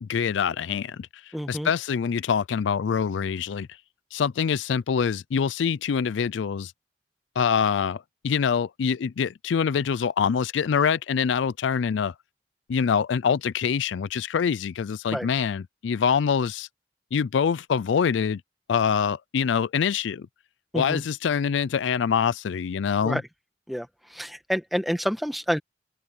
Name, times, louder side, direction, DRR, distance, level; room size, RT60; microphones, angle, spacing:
voice 1, 0.0-1.1 1.5-3.7 4.1-6.7 7.4-12.1 12.7-16.7 17.1-18.4 18.7-20.3 20.7-23.2, left 7 dB, 90° left, 0.4 m, -25 dB
voice 2, 1.3-1.7 15.1-15.3 20.7-21.0 23.0-23.2 23.7-23.9 24.1-25.6, equal, ahead, 1.5 m, -28 dB
head